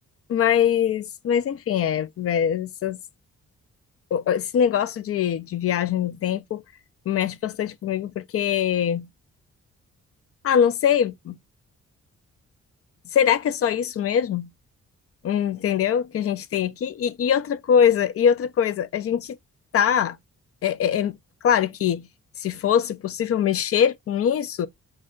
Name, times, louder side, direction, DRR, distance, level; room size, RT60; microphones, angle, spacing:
voice 1, 0.3-3.0 4.1-6.6 7.1-9.1 10.4-11.4 13.1-14.5 15.2-19.4 19.7-20.2 20.6-21.1 21.4-22.1 22.4-24.7, left 8 dB, 50° left, 0.4 m, -23 dB
2.7 x 2.0 x 3.7 m
cardioid pair, 70°, 30 cm